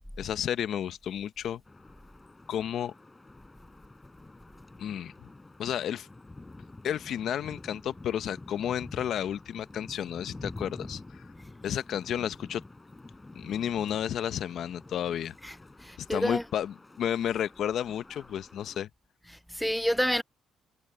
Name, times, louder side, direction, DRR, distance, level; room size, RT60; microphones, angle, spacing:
voice 1, 0.2-1.6 2.5-2.9 4.8-5.1 5.6-6.1 6.8-11.2 11.6-12.6 13.3-15.3 16.0-18.9, left 10 dB, 70° left, 0.9 m, -32 dB
sound 1, 1.7-18.8, left 2 dB, 15° left, 6.3 m, -48 dB
voice 2, 15.4-16.4 19.3-20.2, equal, ahead, 0.6 m, -29 dB
cardioid pair, 90°, 0 cm